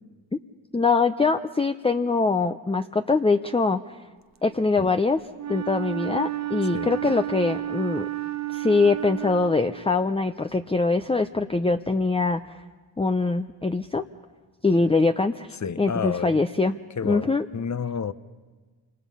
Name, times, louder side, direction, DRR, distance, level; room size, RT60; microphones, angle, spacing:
voice 1, 0.7-3.8 4.4-5.2 5.5-8.1 8.5-12.4 13.0-14.0 14.6-15.5 15.8-16.8 17.0-17.5, left 3 dB, 15° left, 0.7 m, -23 dB
Wind instrument woodwind instrument, 5.3-10.1, right 13 dB, 40° right, 0.8 m, -32 dB
voice 2, 15.6-16.4 17.0-18.1, left 6 dB, 40° left, 1.0 m, -30 dB
28.0 x 27.0 x 5.6 m
cardioid pair, 65°, 45 cm